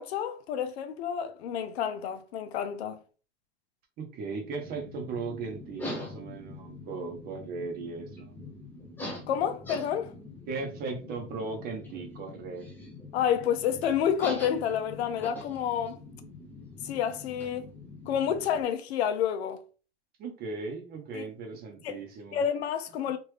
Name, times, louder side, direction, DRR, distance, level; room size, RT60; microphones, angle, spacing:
voice 1, 0.0-3.0 9.3-10.1 13.1-16.0 16.8-17.7 18.1-19.6 21.1-21.3 21.8-22.0 22.3-23.2, left 8 dB, 65° left, 0.7 m, -29 dB
voice 2, 4.0-8.3 10.5-12.7 20.2-22.4, right 4 dB, 25° right, 0.8 m, -37 dB
sound 1, 4.4-18.6, left 2 dB, 5° left, 0.6 m, -43 dB
3.4 x 2.5 x 3.2 m
supercardioid pair, 140°, 34 cm